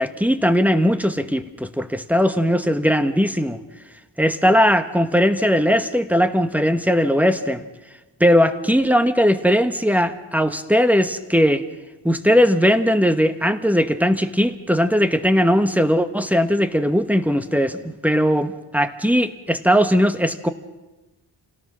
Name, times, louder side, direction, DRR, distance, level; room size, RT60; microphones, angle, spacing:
voice 1, 0.0-3.6 4.2-7.6 8.2-11.6 12.0-20.5, equal, 5° right, 8 dB, 1.2 m, -19 dB
28.0 x 17.5 x 6.2 m, 1.1 s
wide cardioid pair, 100°, 43 cm